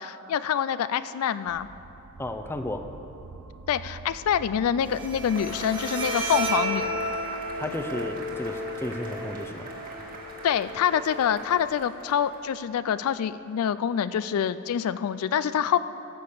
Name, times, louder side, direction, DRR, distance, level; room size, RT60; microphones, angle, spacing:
voice 1, 0.0-1.7 3.7-7.0 10.4-15.8, left 8 dB, 75° left, 15 dB, 0.3 m, -26 dB
sound 1, 1.5-13.4, right 4 dB, 90° right, 0.5 m, -49 dB
voice 2, 2.2-2.9 7.6-9.7, left 1 dB, 10° left, 7 dB, 0.6 m, -33 dB
Bowed string instrument, 4.8-11.8, right 1 dB, 20° right, 1.6 m, -33 dB
Cheering / Applause / Crowd, 5.3-12.5, right 2 dB, 40° right, 2.0 m, -41 dB
15.0 x 7.0 x 6.6 m, 2.9 s
head